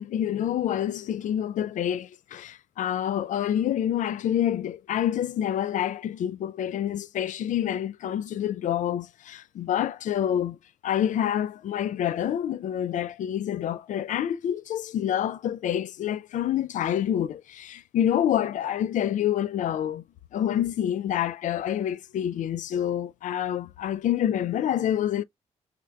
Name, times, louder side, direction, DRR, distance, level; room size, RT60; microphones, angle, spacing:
voice 1, 0.0-10.6 10.8-20.0 20.3-25.2, left 10 dB, 55° left, 0.4 m, -27 dB
3.6 x 3.1 x 2.3 m
hypercardioid pair, 45°, 15 cm